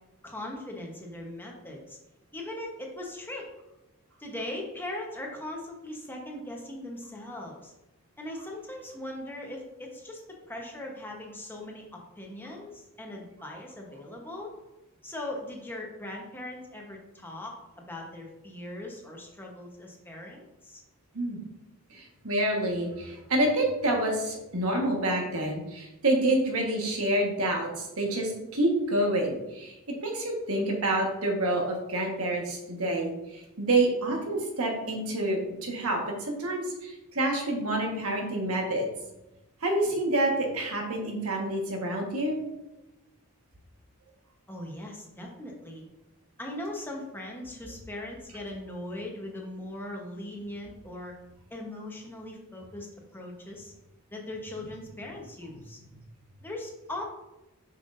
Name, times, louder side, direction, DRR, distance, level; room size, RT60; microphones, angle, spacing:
voice 1, 0.2-2.0 2.3-3.4 4.2-7.7 8.2-10.2 10.5-11.8 12.2-14.5 15.0-20.8 44.5-45.8 46.4-51.1 51.5-53.7 54.1-55.8 56.4-57.0, left 1 dB, 10° left, -1 dB, 1.1 m, -39 dB
voice 2, 21.9-29.7 30.0-38.9 39.6-42.4, right 1 dB, 70° right, 1 dB, 1.5 m, -28 dB
7.3 x 5.9 x 2.6 m, 0.96 s
head